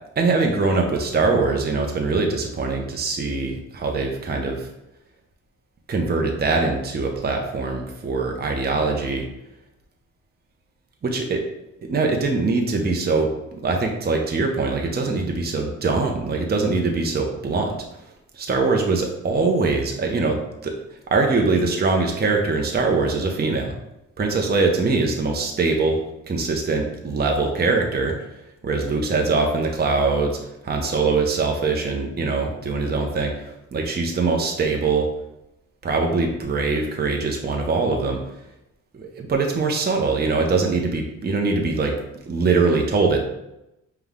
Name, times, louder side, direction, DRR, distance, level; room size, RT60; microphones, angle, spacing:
voice 1, 0.2-4.7 5.9-9.3 11.0-11.4 11.9-17.8 18.3-20.8 21.1-23.7 24.2-26.0 26.3-28.2 28.6-30.4 30.6-35.1 35.8-38.2 38.9-42.0 42.3-43.2, right 3 dB, 30° right, 2 dB, 0.7 m, -22 dB
5.4 x 2.3 x 3.5 m, 0.89 s
cardioid pair, 70°, 33 cm